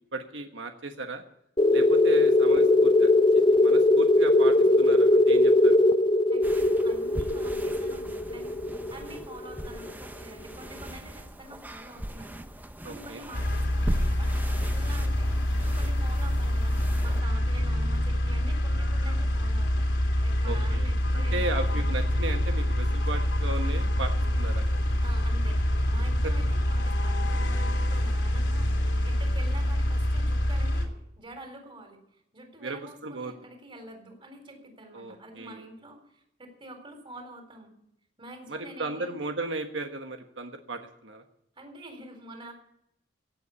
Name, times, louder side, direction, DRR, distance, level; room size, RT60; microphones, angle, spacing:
voice 1, 0.1-1.2 1.7-3.1 3.5-5.8 12.8-13.2 20.4-24.8 26.2-26.3 32.6-33.3 34.9-35.6 38.5-41.2, right 2 dB, 90° right, 5 dB, 1.4 m, -36 dB
sound 1, 1.6-9.9, left 2 dB, 30° left, 0.6 m, -21 dB
voice 2, 6.3-14.4 14.7-21.9 25.0-37.8 38.2-39.3 41.6-42.5, right 1 dB, 30° right, 4 dB, 4.0 m, -47 dB
sound 2, 6.4-17.2, equal, 10° right, 0.8 m, -37 dB
sound 3, 13.3-30.9, left 1 dB, 75° left, 3.1 m, -26 dB
16.5 x 8.4 x 8.4 m, 0.76 s
head